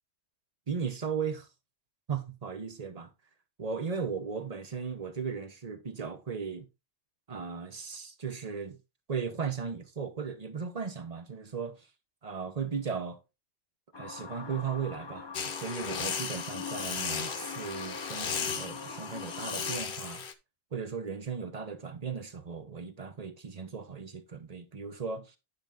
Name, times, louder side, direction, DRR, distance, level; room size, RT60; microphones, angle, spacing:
voice 1, 0.7-1.5 2.1-3.1 3.6-6.7 7.3-8.8 9.1-11.9 12.2-13.2 14.0-20.2 20.7-25.4, right 6 dB, 35° right, 1.1 m, -36 dB
sound 1, 13.9-19.8, left 5 dB, 30° left, 0.5 m, -42 dB
sound 2, 15.3-20.3, left 6 dB, 50° left, 1.0 m, -36 dB
10.0 x 5.3 x 3.7 m
omnidirectional pair, 1.3 m